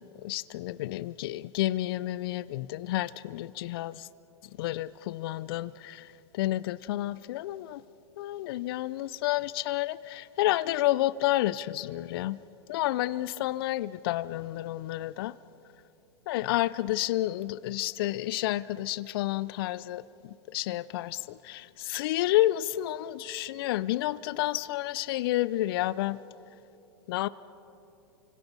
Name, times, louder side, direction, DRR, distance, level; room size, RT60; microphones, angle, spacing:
voice 1, 0.2-4.1 4.6-6.1 6.3-7.8 8.2-12.4 12.7-15.4 16.3-26.2 27.1-27.3, left 15 dB, 55° left, 18 dB, 0.6 m, -30 dB
30.0 x 25.5 x 5.5 m, 2.9 s
hypercardioid pair, 105°, 15 cm